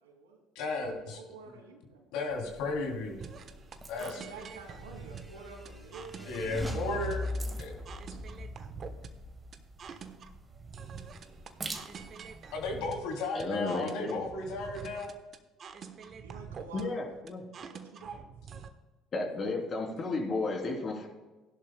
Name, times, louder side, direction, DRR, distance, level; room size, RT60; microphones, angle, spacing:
voice 1, 0.0-0.4 1.1-2.1 4.0-6.9 16.2-17.2 17.7-18.3, right 4 dB, 90° right, 1 dB, 2.5 m, -49 dB
voice 2, 0.5-1.2 2.1-3.2 3.9-4.2 6.2-7.3 7.6-7.7 8.1-8.2 12.5-15.1 16.0-16.1, left 3 dB, 70° left, 1 dB, 2.9 m, -34 dB
sound 1, 2.3-12.8, right 3 dB, 30° right, 1.6 m, -49 dB
sound 2, 3.2-18.7, right 6 dB, 45° right, 1.0 m, -46 dB
sound 3, 4.5-10.1, left 1 dB, 5° right, 2.5 m, -40 dB
voice 3, 13.3-14.2 16.7-17.7 19.1-21.1, left 3 dB, 45° left, 0 dB, 3.2 m, -33 dB
16.5 x 11.0 x 2.2 m, 1.2 s
hypercardioid pair, 60°, 0 cm